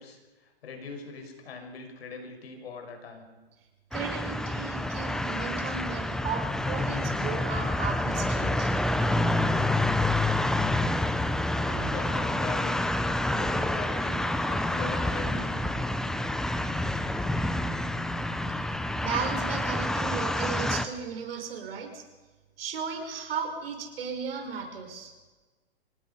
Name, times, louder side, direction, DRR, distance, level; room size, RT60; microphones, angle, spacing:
voice 1, 0.0-3.3 11.6-12.9 13.3-16.1, left 4 dB, 70° left, 4 dB, 5.9 m, -41 dB
sound 1, 3.9-20.8, left 1 dB, ahead, 0.7 m, -28 dB
voice 2, 3.9-8.7 19.0-22.0 22.6-25.1, right 6 dB, 65° right, 4 dB, 5.6 m, -35 dB
26.5 x 18.5 x 5.7 m, 1.3 s
hypercardioid pair, 135°, 32 cm